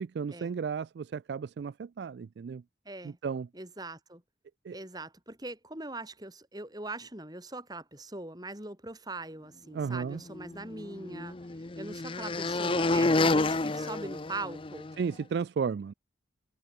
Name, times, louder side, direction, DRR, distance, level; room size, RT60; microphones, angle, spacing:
voice 1, 0.0-2.6 3.2-3.5 4.7-4.8 9.7-10.2 15.0-15.9, right 6 dB, 60° right, 0.3 m, -33 dB
voice 2, 2.8-3.2 3.5-4.2 4.7-14.9, right 2 dB, 20° right, 4.4 m, -41 dB
sound 1, 10.3-14.9, left 2 dB, 30° left, 0.7 m, -29 dB
head